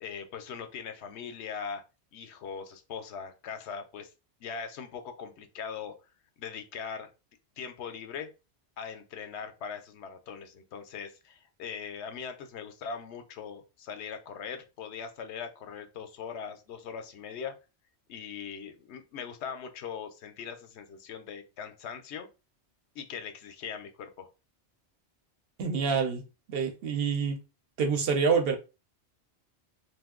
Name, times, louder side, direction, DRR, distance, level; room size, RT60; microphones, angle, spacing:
voice 1, 0.0-1.8 2.1-4.1 4.4-6.0 6.4-7.1 7.6-8.3 8.8-17.6 18.1-22.3 22.9-24.3, left 6 dB, 80° left, 0.9 m, -40 dB
voice 2, 25.6-26.2 26.5-27.4 27.8-28.6, right 5 dB, 65° right, 0.8 m, -27 dB
2.6 x 2.2 x 3.6 m
omnidirectional pair, 1.1 m